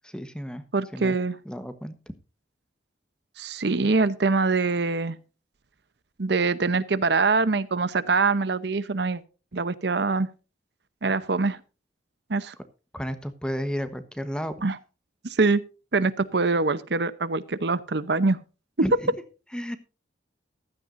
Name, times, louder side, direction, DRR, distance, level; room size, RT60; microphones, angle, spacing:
voice 1, 0.0-0.6 0.9-1.1 1.4-1.9 12.9-14.6 18.8-19.1 19.5-19.8, equal, 5° left, 10 dB, 1.1 m, -32 dB
voice 2, 0.7-1.4 3.4-5.2 6.2-9.2 9.5-10.3 11.0-11.6 12.3-12.5 14.6-14.8 15.2-15.6 15.9-18.4, right 3 dB, 65° right, 15 dB, 0.8 m, -24 dB
15.0 x 13.5 x 2.6 m, 0.33 s
head